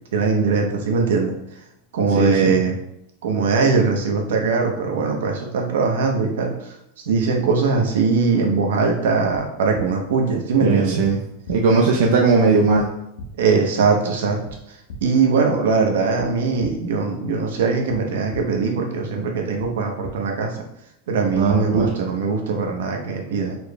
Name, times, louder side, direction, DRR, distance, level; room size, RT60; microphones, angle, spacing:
voice 1, 0.1-1.3 1.9-2.7 3.2-6.8 7.1-11.0 12.5-12.6 13.4-14.4 15.0-20.5 21.1-23.6, right 4 dB, 85° right, 2 dB, 0.9 m, -21 dB
voice 2, 2.1-2.6 10.6-11.2 11.5-12.9 21.3-21.9, right 4 dB, 65° right, -1 dB, 0.6 m, -18 dB
sound 1, 9.7-9.8 11.0-11.1 11.4-11.5 12.7-12.8 13.2-13.3 14.4-14.5 14.9-15.0 16.2-16.3 16.6-16.7 17.9-18.0 18.3-18.4 19.6-19.7 20.0-20.1 21.3-21.4 21.7-21.8, left 1 dB, 60° left, 1.2 m, -36 dB
5.1 x 4.4 x 2.3 m, 0.79 s
supercardioid pair, 180°, 0 cm